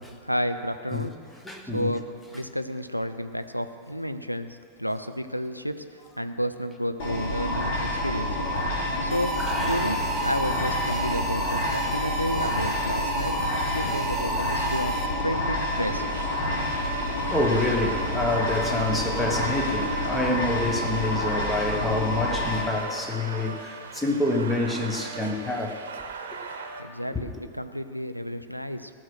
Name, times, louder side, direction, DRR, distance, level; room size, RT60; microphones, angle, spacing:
voice 1, 0.2-1.2 1.7-2.1 2.3-8.8 9.0-13.3 13.7-14.9 15.2-16.3 26.8-28.9, equal, 90° left, 9 dB, 0.5 m, -31 dB
voice 2, 1.4-1.9 9.4-9.7 17.3-25.8 27.1-27.2, left 2 dB, 5° left, 2 dB, 1.4 m, -27 dB
sound 1, 7.0-22.6, left 1 dB, 55° left, 3.2 m, -28 dB
sound 2, 9.1-15.4, right 3 dB, 20° right, 1.3 m, -33 dB
sound 3, 15.8-26.8, right 4 dB, 65° right, 0.9 m, -39 dB
16.0 x 6.3 x 6.3 m, 2.1 s
figure-of-eight pair, 90°, 0 cm